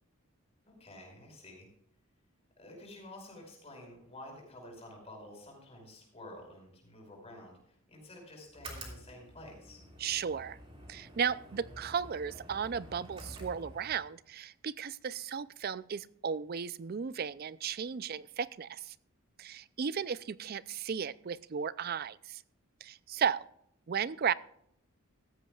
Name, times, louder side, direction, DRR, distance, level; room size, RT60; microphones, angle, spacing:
voice 1, 0.7-1.7 2.6-9.8, left 1 dB, 30° left, 0 dB, 4.9 m, -50 dB
sound 1, 8.5-14.1, right 1 dB, 25° right, 3.2 m, -49 dB
voice 2, 10.0-10.6 10.9-18.9 19.4-22.4 22.8-23.5 23.9-24.3, right 7 dB, 45° right, 17 dB, 0.4 m, -35 dB
16.0 x 13.5 x 2.4 m, 0.71 s
head